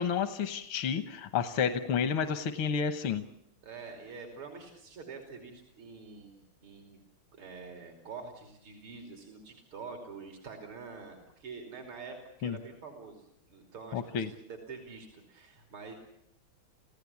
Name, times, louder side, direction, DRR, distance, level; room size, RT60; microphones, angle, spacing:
voice 1, 0.0-3.2 12.4-12.6 13.9-14.3, left 7 dB, 80° left, 9 dB, 1.9 m, -30 dB
voice 2, 3.6-7.0 7.3-15.9, right 4 dB, 80° right, 4 dB, 3.9 m, -46 dB
28.5 x 16.5 x 8.5 m, 0.83 s
omnidirectional pair, 2.3 m